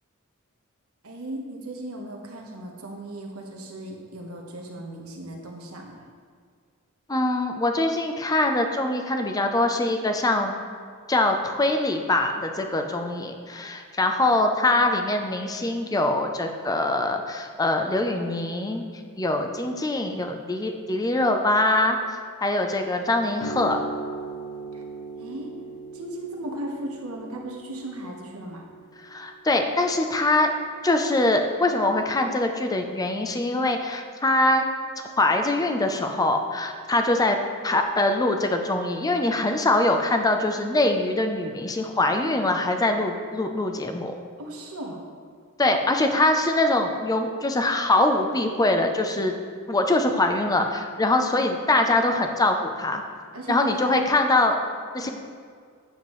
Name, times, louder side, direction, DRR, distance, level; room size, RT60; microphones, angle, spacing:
voice 1, 1.0-6.0 14.7-14.8 24.7-24.8 25.2-25.5 25.9-28.6 44.4-45.0 45.7-45.8 53.3-54.0 55.0-55.1, right 1 dB, 80° right, 0 dB, 1.2 m, -36 dB
voice 2, 7.1-10.5 11.1-18.8 19.2-22.0 22.4-23.8 29.1-30.5 30.8-34.6 35.2-37.4 37.6-44.1 45.6-49.3 49.7-53.0 53.5-54.6 54.9-55.1, left 2 dB, 15° left, 5 dB, 0.6 m, -23 dB
sound 1, 23.4-30.5, right 2 dB, 85° left, 0.7 m, -38 dB
9.2 x 7.3 x 3.2 m, 2.1 s
head